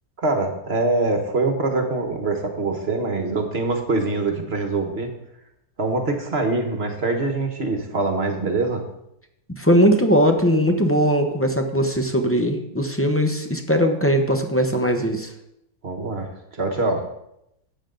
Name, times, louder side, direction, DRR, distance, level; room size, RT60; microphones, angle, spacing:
voice 1, 0.2-5.1 5.8-8.8 15.8-17.1, right 3 dB, 40° right, 4 dB, 1.5 m, -24 dB
voice 2, 9.5-15.3, equal, 10° left, 5 dB, 0.7 m, -19 dB
12.5 x 9.1 x 3.9 m, 0.80 s
omnidirectional pair, 1.7 m